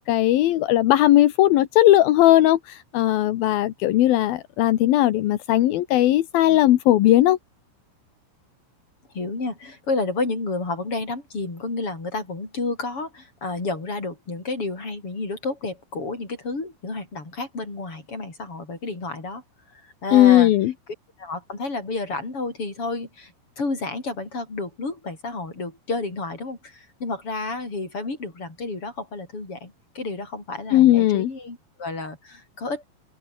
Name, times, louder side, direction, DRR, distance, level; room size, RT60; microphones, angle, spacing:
voice 1, 0.0-7.4 20.1-20.7 30.7-31.3, left 14 dB, 70° left, 2.4 m, -18 dB
voice 2, 9.1-19.4 19.7-20.5 21.2-32.8, left 3 dB, 25° left, 7.9 m, -31 dB
open air
omnidirectional pair, 5.7 m